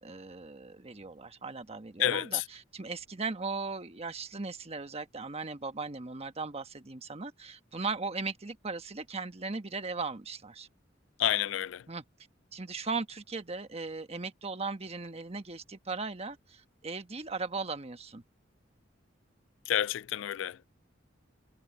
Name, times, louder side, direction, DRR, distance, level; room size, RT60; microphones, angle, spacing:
voice 1, 0.0-10.7 11.9-12.0 12.5-18.2, right 4 dB, 35° right, 1.3 m, -38 dB
voice 2, 2.0-2.4 11.2-11.9 19.7-20.6, left 11 dB, 75° left, 0.3 m, -29 dB
head